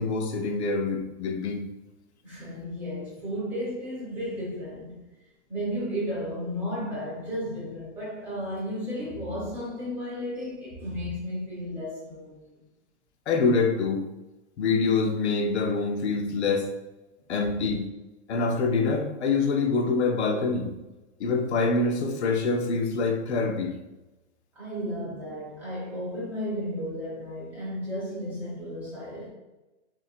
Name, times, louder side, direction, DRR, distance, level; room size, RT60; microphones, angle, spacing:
voice 1, 0.0-1.7 13.3-14.0 14.6-16.7 17.3-17.9 18.3-20.7 21.2-23.7, left 4 dB, 70° left, 0.8 m, -25 dB
voice 2, 2.2-5.0 5.5-12.5 24.5-29.3, equal, 5° right, 0.8 m, -33 dB
3.1 x 2.7 x 4.4 m
hypercardioid pair, 170°, 35 cm